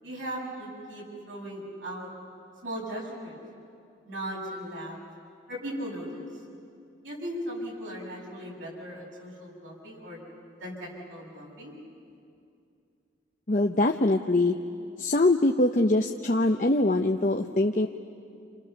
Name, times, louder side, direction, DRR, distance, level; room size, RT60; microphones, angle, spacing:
voice 1, 0.0-2.1 2.6-3.4 4.1-5.0 5.5-6.3 7.0-10.2 10.6-11.8, equal, 90° right, -3 dB, 7.9 m, -37 dB
voice 2, 13.5-14.6 15.0-17.9, left 2 dB, 40° left, 3 dB, 0.8 m, -23 dB
29.0 x 28.5 x 7.0 m, 2.5 s
head